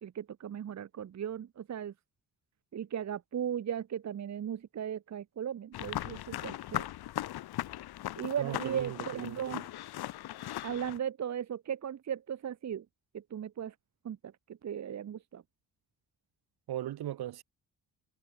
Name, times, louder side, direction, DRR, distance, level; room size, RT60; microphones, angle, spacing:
voice 1, 0.0-1.9 2.7-6.8 8.2-9.7 10.6-12.8 13.1-13.7 14.0-14.3 14.6-15.4, right 9 dB, 45° right, 1.1 m, -37 dB
sound 1, 5.7-11.0, left 14 dB, 80° left, 1.6 m, -38 dB
voice 2, 8.4-9.5 16.7-17.4, right 13 dB, 80° right, 3.8 m, -38 dB
cardioid pair, 95°, 37 cm